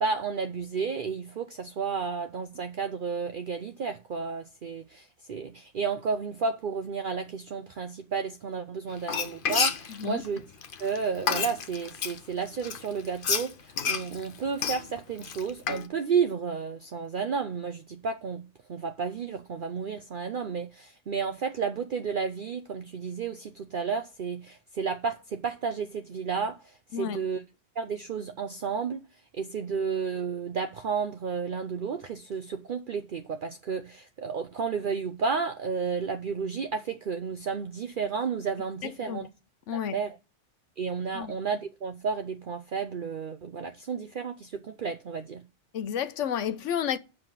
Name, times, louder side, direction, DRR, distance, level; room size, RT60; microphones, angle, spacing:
voice 1, 0.0-10.4 10.8-26.6 26.9-27.4 27.8-29.0 29.3-39.3 39.9-40.2 40.8-45.4, right 5 dB, 50° right, 0.7 m, -32 dB
Frying (food), 9.0-12.2 12.6-15.9, left 6 dB, 50° left, 0.9 m, -30 dB
voice 2, 9.9-10.2 26.9-27.2 38.8-39.3 39.7-40.0 41.1-41.3 45.7-47.0, left 8 dB, 75° left, 1.1 m, -31 dB
7.7 x 5.1 x 7.5 m
omnidirectional pair, 1.3 m